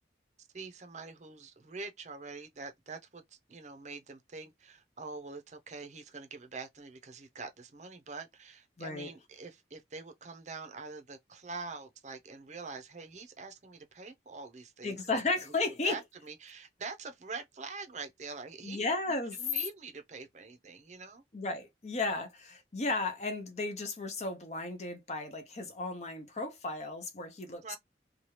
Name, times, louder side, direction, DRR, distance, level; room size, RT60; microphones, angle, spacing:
voice 1, 0.4-15.0 15.6-18.9 19.4-21.2 27.6-27.8, right 4 dB, 40° right, 0.6 m, -45 dB
voice 2, 8.8-9.1 14.8-16.0 18.6-19.4 21.3-27.8, left 3 dB, 40° left, 0.7 m, -34 dB
2.8 x 2.3 x 3.2 m
head